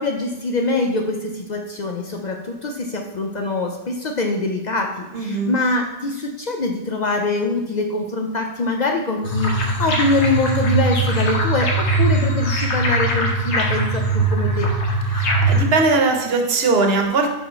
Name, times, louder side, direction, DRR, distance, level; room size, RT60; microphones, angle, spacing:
voice 1, 0.0-14.7, left 2 dB, 50° left, 2 dB, 0.6 m, -24 dB
voice 2, 5.1-5.5 15.1-17.3, right 3 dB, 65° right, 3 dB, 1.0 m, -20 dB
sound 1, 9.2-15.6, right 2 dB, 90° left, 1.2 m, -20 dB
5.1 x 4.4 x 4.4 m, 1.0 s
omnidirectional pair, 1.1 m